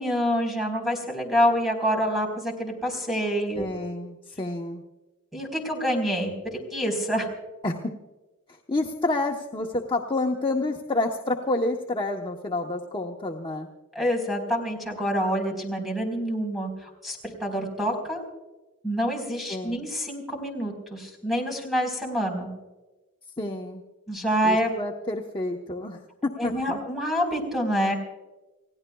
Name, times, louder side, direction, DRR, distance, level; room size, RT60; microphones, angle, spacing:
voice 1, 0.0-3.7 5.3-7.3 13.9-18.2 18.8-22.5 24.1-24.7 26.4-27.9, equal, ahead, 1 dB, 4.1 m, -27 dB
voice 2, 3.6-4.8 7.6-7.9 8.5-13.7 19.5-19.8 23.4-23.8 24.4-26.8, left 2 dB, 20° left, 0 dB, 0.9 m, -29 dB
30.0 x 16.5 x 2.3 m, 1.1 s
head